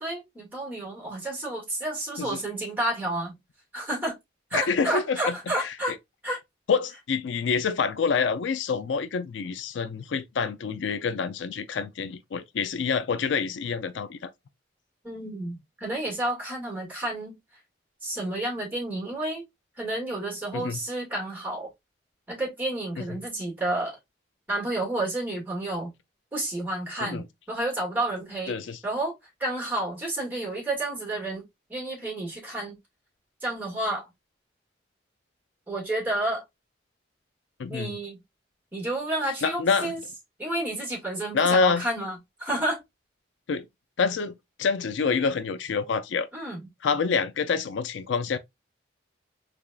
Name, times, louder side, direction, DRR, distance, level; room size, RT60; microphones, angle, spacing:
voice 1, 0.0-3.3 3.7-4.1 4.5-5.9 6.2-6.4 15.0-17.3 18.0-19.4 19.8-21.7 22.3-24.0 24.5-25.9 26.3-28.6 28.8-29.1 29.4-31.4 31.7-32.8 33.4-34.1 35.7-36.4 37.7-38.2 38.7-40.0 40.4-42.8 46.3-46.7, right 1 dB, 10° right, 2.1 m, -30 dB
voice 2, 4.5-5.7 6.7-14.3 20.5-20.8 27.0-27.2 28.5-28.8 37.6-37.9 39.4-39.9 41.3-41.8 43.5-43.6 44.0-46.3 46.8-48.4, left 5 dB, 80° left, 0.4 m, -27 dB
3.8 x 3.4 x 2.4 m
head